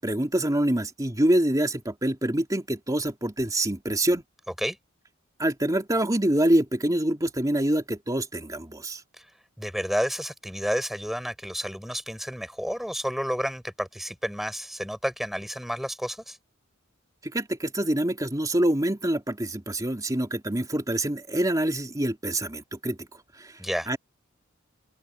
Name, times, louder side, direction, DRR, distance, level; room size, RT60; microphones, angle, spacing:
voice 1, 0.0-4.2 5.4-9.0 17.2-23.0 23.4-23.5 23.9-24.0, right 1 dB, 15° right, 2.8 m, -25 dB
voice 2, 9.6-16.4 23.6-23.9, equal, ahead, 7.4 m, -30 dB
head